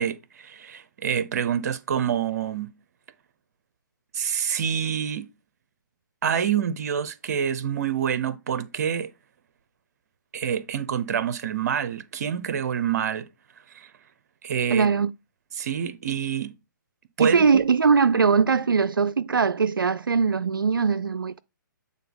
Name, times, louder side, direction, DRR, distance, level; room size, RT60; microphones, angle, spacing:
voice 1, 0.0-2.7 4.1-5.3 6.2-9.1 10.3-13.3 13.7-13.9 14.4-14.9 15.6-16.5 17.2-17.6, right 8 dB, 50° right, 0.8 m, -27 dB
voice 2, 14.7-15.1 17.2-21.4, right 5 dB, 80° right, 0.4 m, -21 dB
8.3 x 3.6 x 3.9 m
figure-of-eight pair, 130°, 11 cm